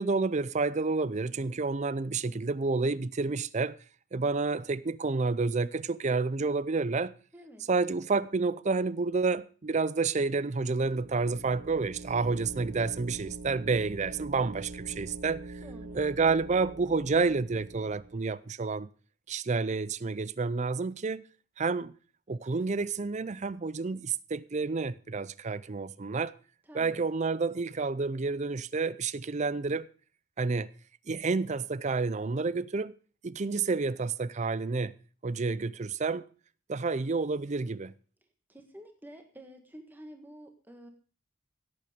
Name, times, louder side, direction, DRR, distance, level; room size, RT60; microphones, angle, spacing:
voice 1, 0.0-3.8 4.1-7.1 7.7-15.4 15.9-18.9 19.3-21.2 21.6-21.9 22.3-26.3 26.7-29.9 30.4-30.7 31.1-33.0 33.2-34.9 35.2-36.2 36.7-37.9, right 4 dB, 35° right, 0.5 m, -29 dB
voice 2, 7.3-7.6 15.6-16.0 26.6-27.0 38.5-40.9, equal, 10° right, 1.7 m, -49 dB
sound 1, 10.6-18.3, right 3 dB, 90° right, 1.2 m, -44 dB
16.5 x 8.5 x 5.1 m
head